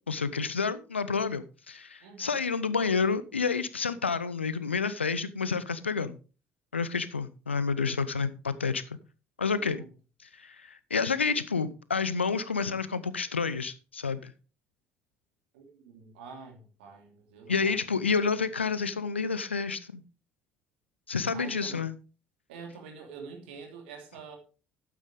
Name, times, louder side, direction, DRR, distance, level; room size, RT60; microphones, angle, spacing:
voice 1, 0.1-6.2 6.7-9.0 9.4-9.8 10.4-14.3 17.5-20.0 21.1-21.9, left 5 dB, 85° left, 0.6 m, -29 dB
voice 2, 2.0-2.4 9.5-9.9 15.5-17.8 21.3-21.9 22.5-24.4, right 5 dB, 70° right, 2.9 m, -46 dB
11.5 x 9.2 x 3.5 m
figure-of-eight pair, 50°, 6 cm